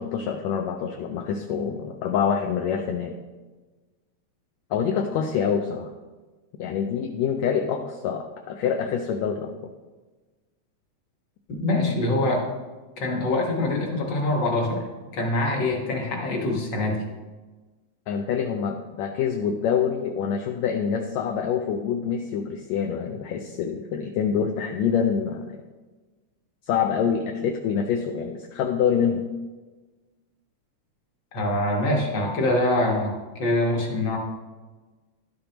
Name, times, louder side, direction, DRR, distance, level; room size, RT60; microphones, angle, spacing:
voice 1, 0.0-3.2 4.7-5.9 6.6-9.5 18.1-25.6 26.7-29.2, left 7 dB, 75° left, 4 dB, 1.8 m, -26 dB
voice 2, 11.5-12.5 13.0-14.8 15.1-17.0 31.3-33.1 33.4-34.2, left 2 dB, 45° left, 0 dB, 1.8 m, -24 dB
11.5 x 8.6 x 2.9 m, 1.3 s
omnidirectional pair, 3.4 m